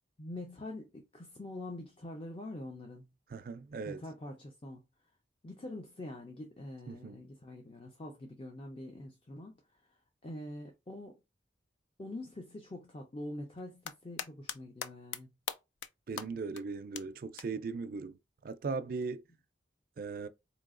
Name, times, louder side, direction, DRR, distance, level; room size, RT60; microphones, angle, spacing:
voice 1, 0.2-3.1 3.8-4.8 5.4-9.6 10.2-11.2 12.0-15.3, left 1 dB, 30° left, 0.5 m, -45 dB
voice 2, 3.3-4.0 6.9-7.2 16.1-19.2 20.0-20.3, right 4 dB, 50° right, 0.4 m, -38 dB
sound 1, 13.6-14.6 14.8-15.2 15.5-15.9 16.2-16.3 16.6-16.7 17.0-17.1 17.4-17.5 19.0-19.1, left 8 dB, 85° left, 0.3 m, -38 dB
4.1 x 2.9 x 2.4 m
head